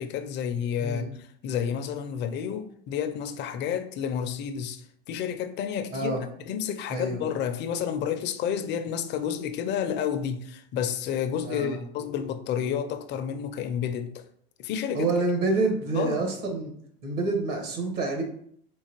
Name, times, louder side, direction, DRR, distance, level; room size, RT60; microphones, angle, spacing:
voice 1, 0.0-6.1 6.5-14.2 14.6-15.1 15.5-15.7 16.0-16.2, left 8 dB, 40° left, 0.5 m, -30 dB
voice 2, 5.9-6.2 6.9-7.2 11.4-11.8 14.9-16.7 17.0-18.2, right 3 dB, 70° right, 1.3 m, -27 dB
3.8 x 2.8 x 2.9 m
hypercardioid pair, 100°, 29 cm